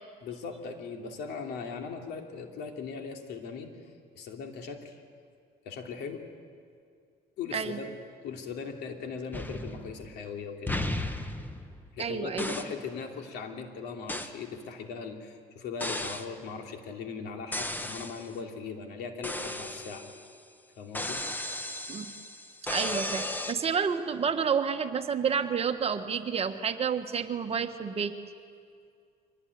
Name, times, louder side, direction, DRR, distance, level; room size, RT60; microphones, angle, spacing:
voice 1, 0.2-3.8 4.1-5.0 5.6-6.2 7.4-7.9 8.2-10.7 11.9-20.0 20.8-21.2, left 5 dB, 80° left, 3 dB, 2.9 m, -39 dB
sound 1, 9.3-10.3 10.7-12.0 12.4-12.8 14.1-14.4 15.8-16.3 17.5-18.3 19.2-20.3 20.9-23.5, left 1 dB, 10° left, 1.4 m, -35 dB
voice 2, 12.0-12.5 21.9-22.2 22.7-28.1, right 6 dB, 35° right, 7 dB, 1.5 m, -30 dB
24.0 x 19.0 x 9.7 m, 2.2 s
cardioid pair, 110°, 17 cm